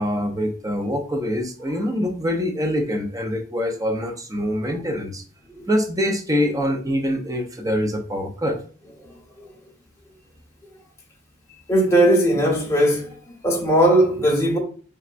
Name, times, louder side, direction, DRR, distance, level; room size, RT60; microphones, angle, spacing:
voice 1, 0.0-5.2 5.7-8.6, equal, 15° right, 0.5 m, -24 dB
voice 2, 11.7-13.2 13.4-14.6, right 1 dB, 15° left, 1.0 m, -18 dB
4.3 x 3.3 x 2.5 m
head